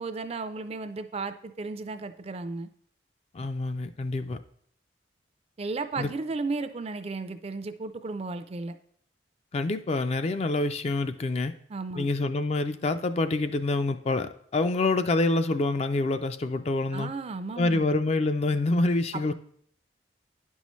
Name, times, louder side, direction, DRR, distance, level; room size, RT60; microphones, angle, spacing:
voice 1, 0.0-2.7 5.6-8.8 11.7-12.1 16.9-17.9 19.1-19.3, right 3 dB, 35° right, 10 dB, 0.4 m, -34 dB
voice 2, 3.3-4.4 6.0-6.1 9.5-11.5 12.0-17.1 17.6-19.3, left 2 dB, 35° left, 10 dB, 0.3 m, -26 dB
10.0 x 5.5 x 3.1 m, 0.63 s
head